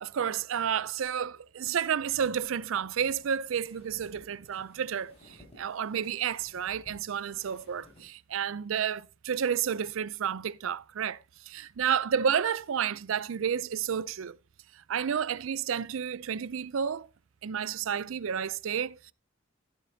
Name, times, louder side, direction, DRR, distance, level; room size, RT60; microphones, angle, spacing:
voice 1, 0.0-11.2 11.5-14.4 14.9-17.1 17.4-19.1, right 8 dB, 65° right, 0.4 m, -31 dB
sound 1, 1.7-8.1, left 1 dB, 30° left, 5.2 m, -59 dB
12.0 x 12.0 x 2.7 m
head